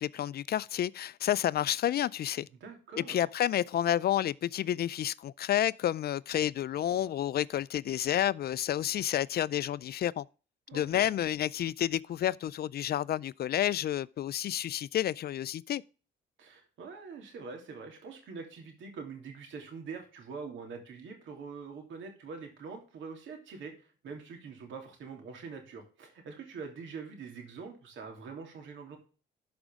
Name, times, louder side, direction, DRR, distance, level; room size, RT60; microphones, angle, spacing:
voice 1, 0.0-2.5 3.0-10.2 10.7-15.8, left 11 dB, 50° left, 0.4 m, -30 dB
voice 2, 2.5-3.2 10.7-11.1 16.4-29.0, right 5 dB, 75° right, 3.0 m, -44 dB
12.5 x 5.2 x 3.6 m
cardioid pair, 90°, 20 cm